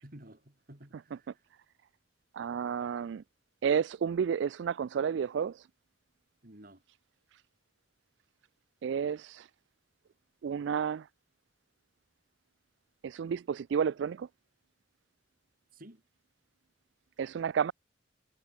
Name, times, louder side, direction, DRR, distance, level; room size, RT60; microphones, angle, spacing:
voice 1, 0.0-1.5 6.4-6.8 15.7-16.0, right 1 dB, 50° right, 3.6 m, -53 dB
voice 2, 2.3-3.2 3.6-5.7 8.8-9.5 10.4-11.1 13.0-14.3 17.2-17.7, right 7 dB, 75° right, 0.3 m, -31 dB
head